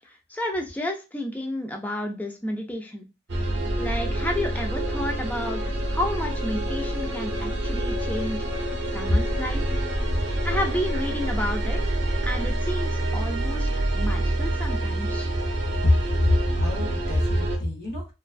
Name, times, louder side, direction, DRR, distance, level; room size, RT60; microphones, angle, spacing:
voice 1, 0.3-3.0 3.8-8.4 8.9-9.6 10.4-11.8 12.2-15.3, left 1 dB, 10° left, 3 dB, 0.3 m, -31 dB
sound 1, 3.3-17.6, right 1 dB, 60° right, 0.6 m, -27 dB
voice 2, 16.2-18.1, left 1 dB, 50° left, 0 dB, 0.8 m, -23 dB
2.4 x 2.2 x 2.3 m, 0.27 s
head